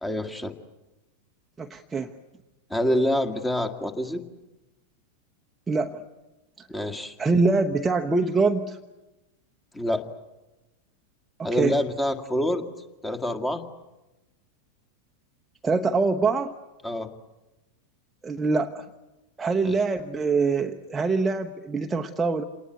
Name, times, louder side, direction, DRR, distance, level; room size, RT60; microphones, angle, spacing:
voice 1, 0.0-0.5 2.7-4.2 6.7-7.1 9.7-10.0 11.4-12.6 13.0-13.6 16.8-17.1 19.6-19.7, left 1 dB, 10° left, 8 dB, 1.9 m, -26 dB
voice 2, 1.6-2.1 5.7-6.0 6.6-6.7 7.2-8.8 11.4-11.8 15.6-16.5 18.2-18.9 19.4-22.4, right 4 dB, 15° right, 3 dB, 1.0 m, -24 dB
27.5 x 19.5 x 9.3 m, 1.1 s
figure-of-eight pair, 90°, 0 cm